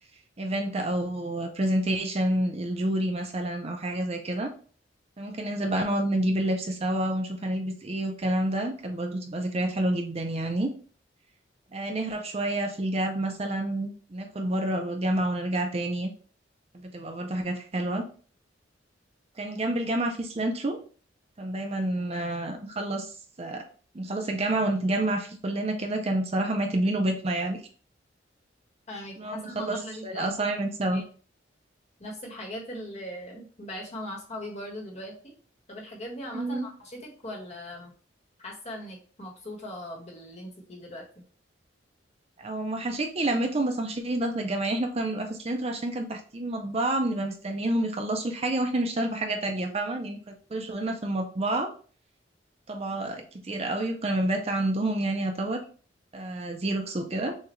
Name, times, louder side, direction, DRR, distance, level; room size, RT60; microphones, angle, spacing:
voice 1, 0.4-4.5 5.2-10.7 11.7-16.1 16.7-18.1 19.4-20.8 21.4-23.7 23.9-27.6 29.2-31.0 36.3-36.7 42.4-51.7 52.7-55.6 56.1-57.4, right 1 dB, 35° right, 4 dB, 0.6 m, -29 dB
voice 2, 28.9-30.3 30.9-31.0 32.0-35.3 35.7-37.9 38.4-41.2, left 1 dB, 35° left, -1 dB, 1.4 m, -39 dB
6.4 x 2.4 x 3.1 m, 0.40 s
head